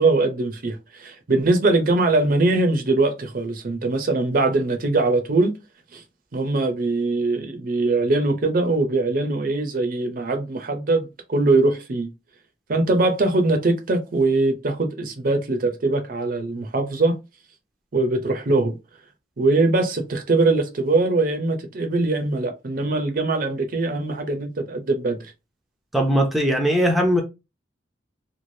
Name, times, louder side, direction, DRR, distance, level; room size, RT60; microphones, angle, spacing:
voice 1, 0.0-5.5 5.9-6.0 6.3-12.1 12.7-17.2 17.9-18.8 19.4-25.2, right 2 dB, 50° right, 0.5 m, -22 dB
voice 2, 25.9-27.2, equal, ahead, 0.5 m, -19 dB
3.1 x 2.4 x 2.6 m
head